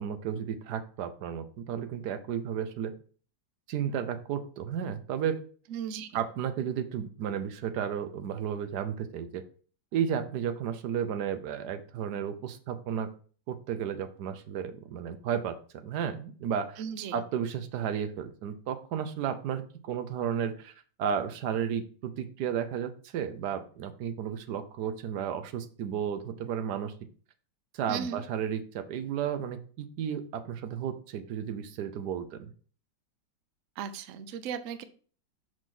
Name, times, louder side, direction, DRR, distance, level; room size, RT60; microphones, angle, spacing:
voice 1, 0.0-2.9 3.7-5.4 6.1-9.4 9.9-13.1 13.5-16.8 17.1-20.7 21.0-26.9 27.7-32.5, right 8 dB, 65° right, 11 dB, 1.1 m, -33 dB
voice 2, 5.7-6.2 16.8-17.2 27.9-28.2 33.8-34.8, right 8 dB, 90° right, 11 dB, 0.6 m, -36 dB
6.0 x 5.1 x 3.7 m, 0.41 s
omnidirectional pair, 2.1 m